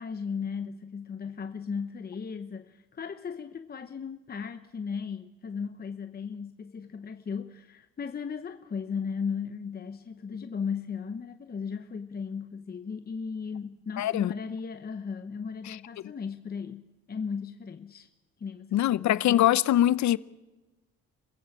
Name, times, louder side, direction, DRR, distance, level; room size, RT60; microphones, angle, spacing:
voice 1, 0.0-18.1 18.4-19.1, left 6 dB, 30° left, 0.9 m, -36 dB
voice 2, 14.0-14.3 15.7-15.8 18.7-20.2, left 13 dB, 70° left, 0.7 m, -23 dB
27.5 x 15.5 x 7.2 m
cardioid pair, 90°, 30 cm